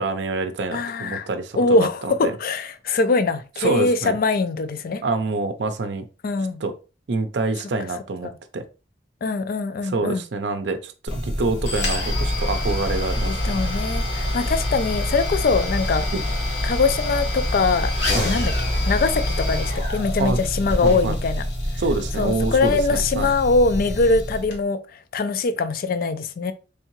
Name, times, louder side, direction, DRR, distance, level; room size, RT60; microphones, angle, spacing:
voice 1, 0.0-2.4 3.6-4.2 5.0-6.1 6.6-6.7 7.1-8.6 9.8-13.4 16.1-16.2 18.1-18.4 20.2-20.5 20.8-21.2 21.8-23.3, right 3 dB, 70° right, 0.5 m, -26 dB
voice 2, 0.7-1.3 1.5-5.0 6.2-6.6 8.2-8.3 9.2-10.2 13.3-16.1 16.6-18.5 18.9-21.4 22.2-24.8 25.1-26.5, left 3 dB, 55° left, 0.4 m, -22 dB
sound 1, 11.1-24.6, left 1 dB, 80° left, 1.5 m, -25 dB
3.6 x 3.4 x 3.0 m
head